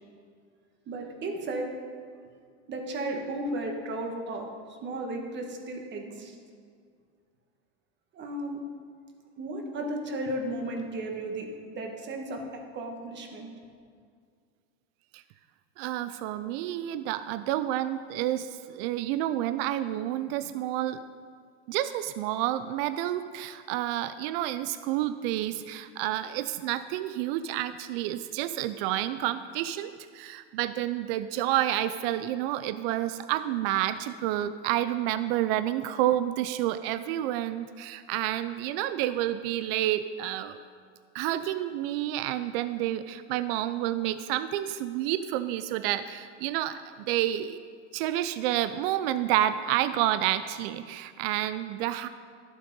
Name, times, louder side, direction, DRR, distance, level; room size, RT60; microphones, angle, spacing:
voice 1, 0.9-1.7 2.7-4.5 4.8-6.3 8.1-8.6 9.4-12.4 12.7-13.5, right 1 dB, 30° right, 2 dB, 1.5 m, -34 dB
voice 2, 15.8-21.0 21.7-40.6 41.1-47.6 47.9-52.1, right 13 dB, 55° right, 12 dB, 0.5 m, -29 dB
11.5 x 7.5 x 5.3 m, 2.1 s
supercardioid pair, 130°, 35 cm